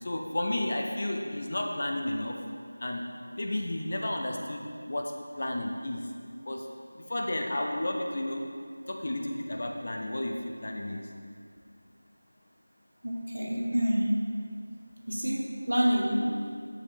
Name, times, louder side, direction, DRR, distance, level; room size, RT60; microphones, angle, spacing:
voice 1, 0.0-2.4 2.8-3.0 3.3-6.0 6.5-6.6 6.9-8.5 8.9-11.0, left 1 dB, 40° left, 2 dB, 0.9 m, -32 dB
voice 2, 13.0-14.1 15.1-16.6, equal, 65° right, -1 dB, 1.6 m, -27 dB
11.0 x 7.8 x 3.0 m, 2.2 s
figure-of-eight pair, 170°, 0 cm